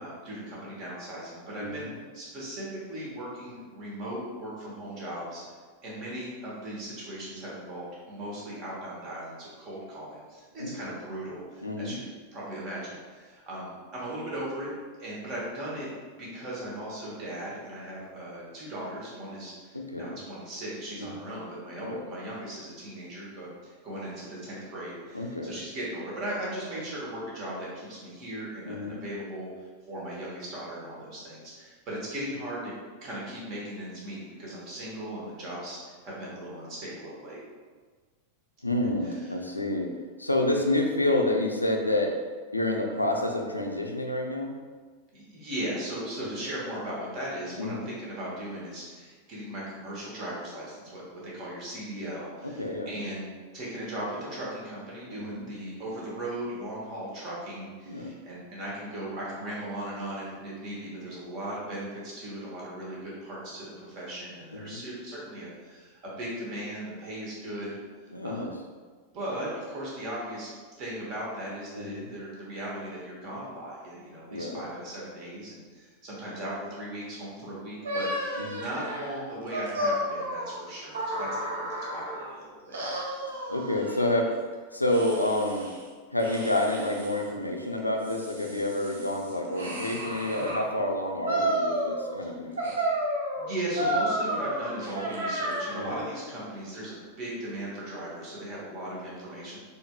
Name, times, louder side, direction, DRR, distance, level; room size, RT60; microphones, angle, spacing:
voice 1, 0.0-5.4 5.8-14.7 15.0-15.9 16.2-29.5 29.9-32.7 33.0-37.4 38.8-39.3 45.1-67.8 68.2-68.5 69.1-70.5 70.8-81.3 81.5-82.8 93.3-99.6, right 1 dB, 40° right, -5 dB, 1.3 m, -38 dB
voice 2, 1.6-1.9 10.6-10.9 11.6-12.0 19.7-20.2 21.0-21.2 21.8-22.0 25.1-25.6 28.7-29.0 38.6-39.9 40.2-42.1 42.5-44.6 47.6-47.9 52.4-52.9 55.2-55.4 57.9-58.1 64.5-64.8 68.1-68.5 71.7-72.1 74.3-74.7 78.4-78.6 83.5-84.3 84.7-85.7 86.1-92.7 95.8-96.0, left 1 dB, 85° left, 2 dB, 0.4 m, -29 dB
sound 1, 77.8-82.3 82.7-84.3 84.9-85.8 86.2-87.2 87.8-90.7 91.3-92.2 92.6-96.0, right 1 dB, 65° right, 0.7 m, -32 dB
4.1 x 3.2 x 2.3 m, 1.5 s
figure-of-eight pair, 90°, 0 cm